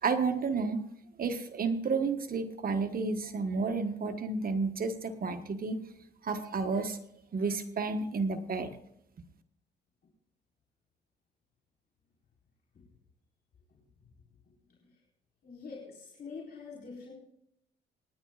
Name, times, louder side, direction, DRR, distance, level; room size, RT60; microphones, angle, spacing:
voice 1, 0.0-0.8 1.2-5.8 6.2-7.0 7.3-8.8, right 4 dB, 45° right, 6 dB, 1.2 m, -31 dB
voice 2, 13.7-14.1 14.7-15.0 15.4-17.1, left 4 dB, 55° left, -4 dB, 4.2 m, -46 dB
27.0 x 10.5 x 2.4 m, 0.75 s
cardioid pair, 90°, 20 cm